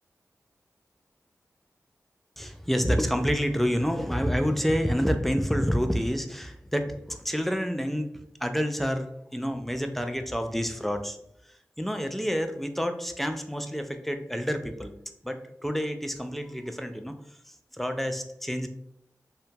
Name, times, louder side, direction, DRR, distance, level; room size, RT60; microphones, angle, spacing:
voice 1, 2.4-11.2 11.5-14.9 15.2-17.1 17.5-18.7, equal, 5° left, 7 dB, 0.3 m, -28 dB
2.8 x 2.2 x 2.6 m, 0.73 s
cardioid pair, 55°, 6 cm